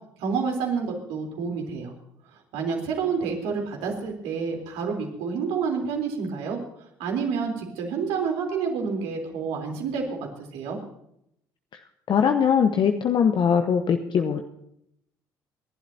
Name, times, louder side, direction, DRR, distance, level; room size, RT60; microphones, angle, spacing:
voice 1, 0.2-1.9 2.5-6.6 7.0-10.2 10.5-10.8, right 5 dB, 70° right, 1 dB, 3.6 m, -28 dB
voice 2, 12.1-14.4, left 7 dB, 50° left, 5 dB, 1.0 m, -21 dB
28.0 x 11.5 x 2.8 m, 0.74 s
hypercardioid pair, 55°, 11 cm